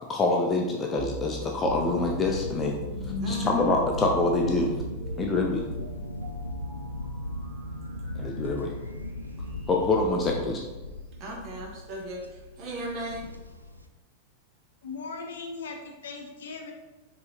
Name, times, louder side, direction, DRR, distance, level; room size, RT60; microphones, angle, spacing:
voice 1, 0.1-4.8 5.2-5.6 8.2-8.7 9.7-10.6, left 2 dB, 20° left, 1 dB, 0.5 m, -26 dB
sound 1, 1.0-10.1, left 2 dB, 65° right, 1.2 m, -41 dB
sound 2, 1.6-13.9, left 1 dB, 90° left, 0.3 m, -37 dB
voice 2, 3.2-3.7 11.2-13.3, right 1 dB, 35° right, -2 dB, 1.1 m, -36 dB
voice 3, 14.8-16.7, left 4 dB, 60° left, 2 dB, 0.7 m, -38 dB
5.4 x 2.9 x 2.8 m, 1.2 s
figure-of-eight pair, 90°, 0 cm